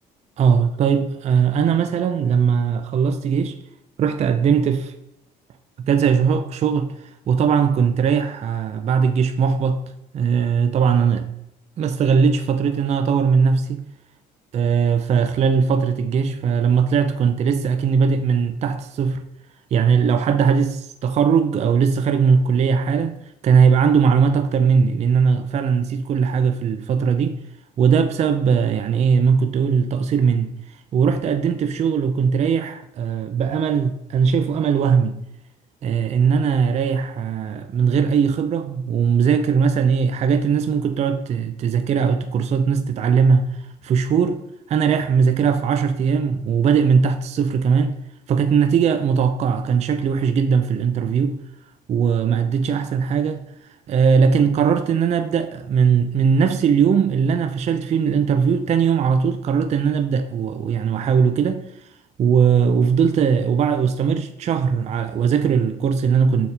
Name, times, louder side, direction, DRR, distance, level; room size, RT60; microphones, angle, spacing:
voice 1, 0.4-3.6 4.0-4.9 5.8-9.8 10.1-11.3 11.8-13.9 14.5-19.2 19.7-23.2 23.4-27.4 27.8-30.5 30.9-35.2 35.8-44.4 44.7-48.0 48.3-51.4 51.9-61.9 62.2-66.5, right 6 dB, 40° right, 0.4 m, -19 dB
6.7 x 4.1 x 3.5 m
cardioid pair, 110°, 17 cm